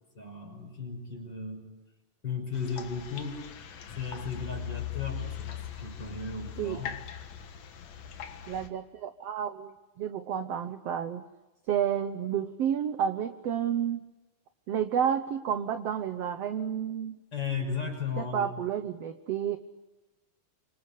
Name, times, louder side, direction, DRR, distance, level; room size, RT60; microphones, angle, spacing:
voice 1, 0.1-1.7 2.2-3.4 4.0-6.9 17.3-18.5, left 5 dB, 30° left, 3 dB, 6.8 m, -35 dB
sound 1, 2.5-8.7, left 10 dB, 60° left, 2.7 m, -40 dB
voice 2, 8.5-11.3 11.7-14.0 14.7-17.2 18.2-19.6, right 9 dB, 65° right, 9 dB, 1.7 m, -30 dB
27.5 x 25.0 x 8.4 m, 1.1 s
omnidirectional pair, 3.8 m